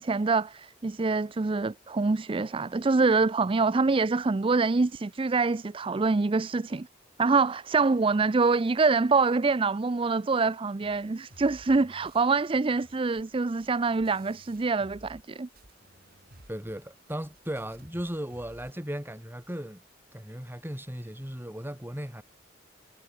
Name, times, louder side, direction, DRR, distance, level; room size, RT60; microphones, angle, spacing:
voice 1, 0.0-6.9 7.2-15.5, right 4 dB, 30° right, 0.4 m, -25 dB
sound 1, 10.8-15.3 15.6-18.8, right 1 dB, 55° right, 4.4 m, -55 dB
voice 2, 16.5-19.8 20.1-22.2, equal, 10° right, 3.7 m, -36 dB
head